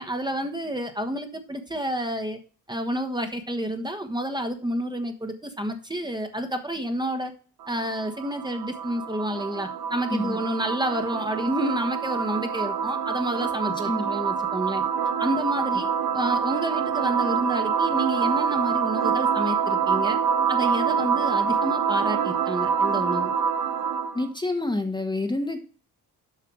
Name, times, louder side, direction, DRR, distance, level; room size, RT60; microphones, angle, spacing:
voice 1, 0.0-2.4 2.7-7.3 7.7-14.8 15.2-20.2 20.5-23.3, right 1 dB, 10° right, 5 dB, 1.4 m, -29 dB
sound 1, 7.6-24.3, right 6 dB, 85° right, 1.3 m, -26 dB
voice 2, 24.1-25.6, left 2 dB, 15° left, 5 dB, 1.3 m, -28 dB
7.5 x 5.6 x 6.2 m, 0.38 s
cardioid pair, 80°, 35 cm